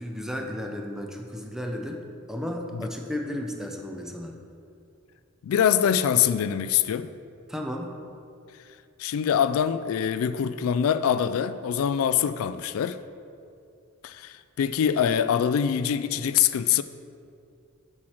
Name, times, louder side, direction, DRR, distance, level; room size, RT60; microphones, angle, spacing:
voice 1, 0.0-2.0 2.3-4.4 7.5-8.0, left 1 dB, ahead, 2 dB, 0.6 m, -33 dB
voice 2, 5.4-7.1 9.0-13.0 14.0-16.8, left 8 dB, 85° left, 14 dB, 0.3 m, -24 dB
7.3 x 4.5 x 6.3 m, 2.5 s
head